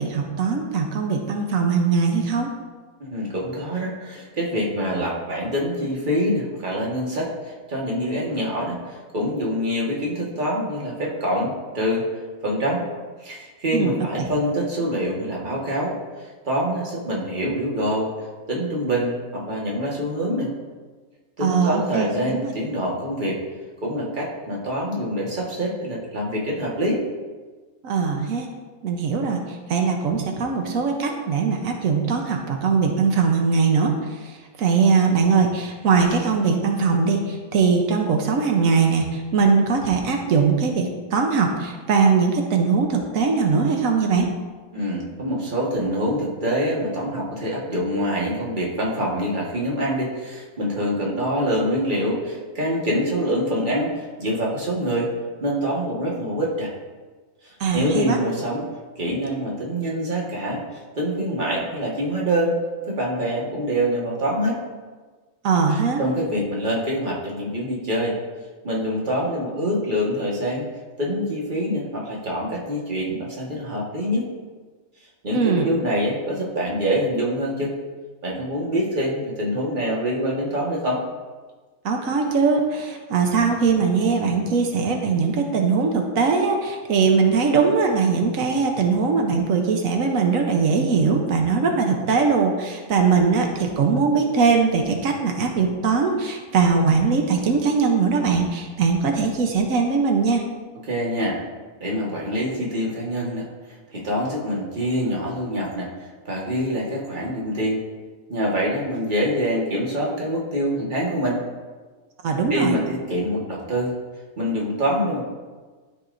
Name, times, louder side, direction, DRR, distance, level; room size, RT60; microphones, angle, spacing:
voice 1, 0.0-2.5 13.7-14.3 21.4-22.5 27.8-28.5 28.8-29.4 29.7-33.9 34.2-34.3 34.6-44.3 57.6-58.2 65.4-66.0 75.3-75.7 81.8-100.4 112.2-112.7, right 5 dB, 90° right, 3 dB, 1.2 m, -21 dB
voice 2, 3.0-12.1 12.4-12.8 13.2-15.9 16.4-18.1 18.5-20.5 21.4-23.4 23.8-27.0 44.7-55.1 55.4-56.7 57.4-58.7 59.0-62.6 62.9-64.6 65.7-68.2 68.6-70.6 71.0-74.3 75.2-77.7 78.2-81.0 100.9-101.4 101.8-103.5 103.9-107.8 108.3-111.4 112.5-113.9 114.4-115.3, equal, 40° right, -4 dB, 1.6 m, -25 dB
12.5 x 5.2 x 2.5 m, 1.4 s
omnidirectional pair, 1.4 m